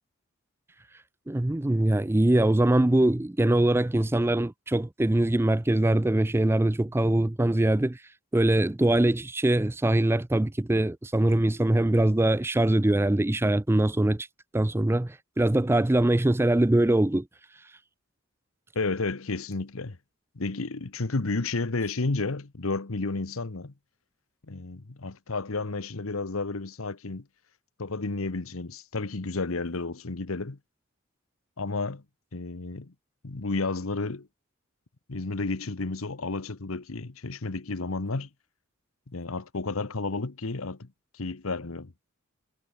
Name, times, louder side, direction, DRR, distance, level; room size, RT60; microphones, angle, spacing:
voice 1, 1.3-8.0 8.3-14.3 14.5-17.2, right 1 dB, 10° right, 0.4 m, -23 dB
voice 2, 18.7-20.0 20.3-23.7 24.5-27.2 27.8-30.6 31.6-32.0 32.3-32.9 33.2-34.3 35.1-38.3 39.1-40.9 41.1-41.9, left 3 dB, 85° left, 1.1 m, -31 dB
head